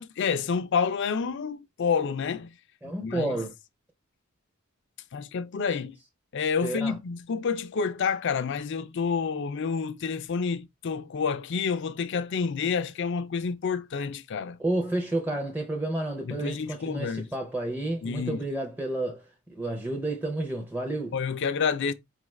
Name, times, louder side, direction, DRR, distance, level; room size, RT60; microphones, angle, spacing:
voice 1, 0.0-2.5 2.8-3.4 5.1-6.0 6.3-14.6 16.3-17.3 18.0-18.4 21.1-21.9, left 5 dB, 55° left, 0.4 m, -29 dB
voice 2, 2.8-3.5 6.6-7.0 14.6-21.2, right 2 dB, 10° right, 0.6 m, -31 dB
4.8 x 2.4 x 3.1 m
head